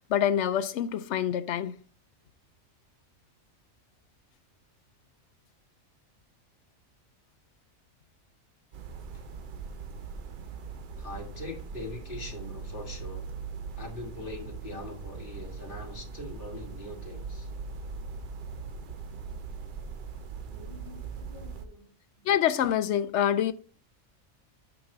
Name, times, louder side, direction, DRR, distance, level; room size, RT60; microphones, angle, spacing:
voice 1, 0.1-1.8 22.3-23.5, left 10 dB, 65° left, 0.8 m, -26 dB
sound 1, 8.7-21.6, right 5 dB, 55° right, 0.6 m, -40 dB
voice 2, 11.0-13.3 13.8-17.5 20.5-21.9, left 2 dB, 40° left, 1.9 m, -42 dB
8.7 x 3.0 x 6.1 m
omnidirectional pair, 1.4 m